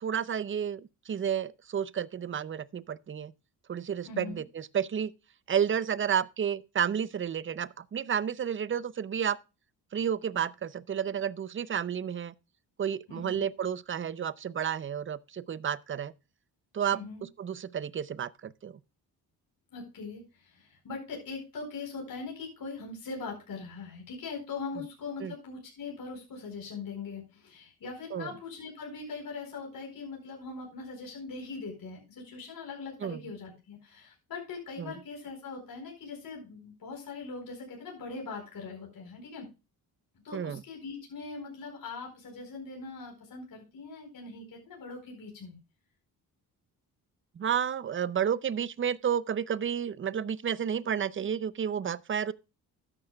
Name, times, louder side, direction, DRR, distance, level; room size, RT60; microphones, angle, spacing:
voice 1, 0.0-3.3 3.7-5.1 5.5-9.4 9.9-12.3 12.8-16.1 16.7-17.0 17.4-18.7 25.2-25.3 28.1-28.3 33.0-33.2 34.8-34.9 40.3-40.6 47.4-52.3, right 8 dB, 35° right, 0.6 m, -31 dB
voice 2, 4.0-4.4 13.1-13.4 16.9-17.2 19.7-39.5 40.2-45.6, left 4 dB, 60° left, 4.5 m, -41 dB
13.0 x 9.9 x 2.3 m
cardioid pair, 100°, 38 cm